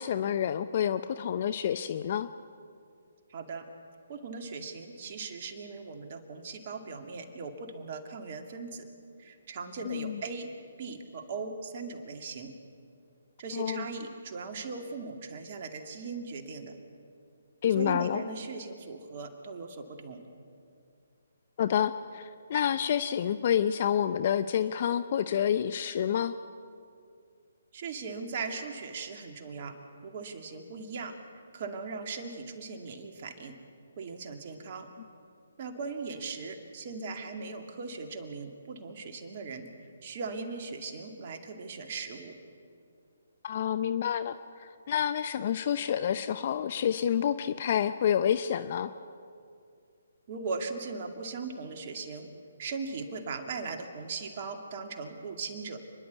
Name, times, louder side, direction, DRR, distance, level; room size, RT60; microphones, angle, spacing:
voice 1, 0.0-2.3 9.8-10.2 13.5-13.9 17.6-18.2 21.6-26.3 43.4-48.9, left 9 dB, 45° left, 12 dB, 0.7 m, -28 dB
voice 2, 3.3-3.6 4.1-8.9 9.2-10.5 10.8-12.5 13.4-16.7 17.8-20.2 27.7-29.8 30.0-31.1 31.5-33.5 34.0-34.9 35.6-39.7 40.0-42.3 50.3-52.3 52.6-55.8, right 4 dB, 45° right, 4 dB, 2.3 m, -39 dB
29.0 x 11.5 x 8.2 m, 2.4 s
figure-of-eight pair, 145°, 0 cm